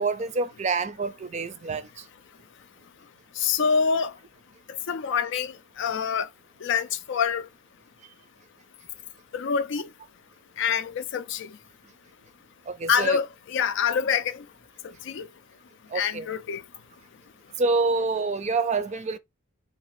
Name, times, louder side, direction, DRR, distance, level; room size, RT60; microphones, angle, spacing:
voice 1, 0.0-2.0 12.7-13.2 15.9-16.3 17.6-19.2, right 3 dB, 30° right, 0.5 m, -27 dB
voice 2, 3.4-4.1 4.9-6.3 6.6-7.5 9.3-9.9 10.6-11.5 12.9-14.5 14.8-15.3 15.9-16.6, left 6 dB, 55° left, 0.4 m, -26 dB
4.1 x 2.4 x 4.7 m
head